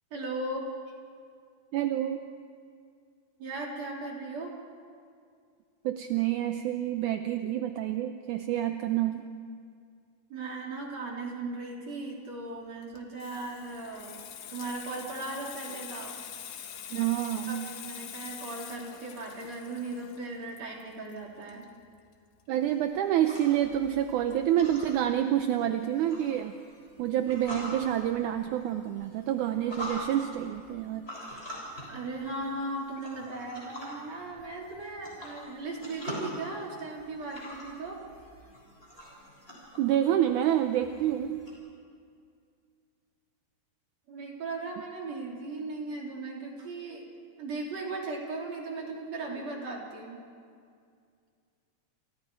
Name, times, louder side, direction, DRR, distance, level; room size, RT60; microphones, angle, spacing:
voice 1, 0.1-0.7 3.4-4.6 10.3-14.2 14.5-16.2 16.9-17.1 17.5-21.7 31.9-38.0 44.1-47.1 47.4-50.2, right 2 dB, 45° right, -1 dB, 4.3 m, -37 dB
voice 2, 1.7-2.2 5.8-9.3 16.9-17.6 22.5-26.5 27.0-31.1 39.8-41.4, right 11 dB, 75° right, 7 dB, 1.9 m, -28 dB
Water tap faucet / Sink (filling or washing), 12.8-22.1 22.4-22.7, left 9 dB, 90° left, 3.5 m, -45 dB
sound 1, 22.6-41.5, equal, 15° left, 7.1 m, -45 dB
29.0 x 28.0 x 4.7 m, 2.3 s
omnidirectional pair, 4.4 m